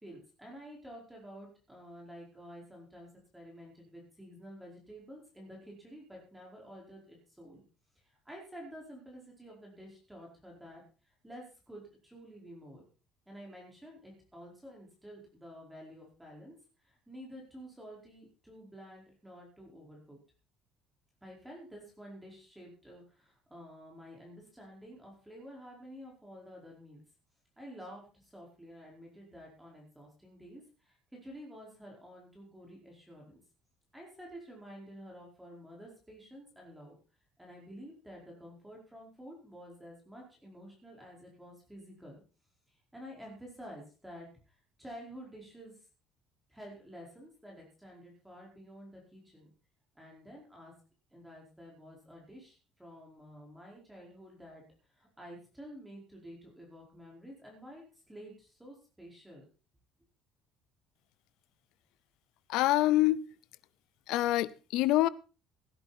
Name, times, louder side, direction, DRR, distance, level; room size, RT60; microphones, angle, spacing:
voice 1, 0.0-7.6 8.2-10.8 11.2-12.8 13.3-16.5 16.8-20.2 21.2-27.0 27.6-33.4 33.9-37.0 37.4-42.2 42.9-44.3 44.8-45.7 46.5-49.5 49.9-50.7 51.1-54.6 54.9-59.4, equal, 5° right, -1 dB, 4.8 m, -50 dB
voice 2, 62.5-63.3 64.1-65.1, left 16 dB, 70° left, 19 dB, 0.6 m, -26 dB
16.5 x 10.5 x 4.3 m, 0.34 s
cardioid pair, 165°, 0 cm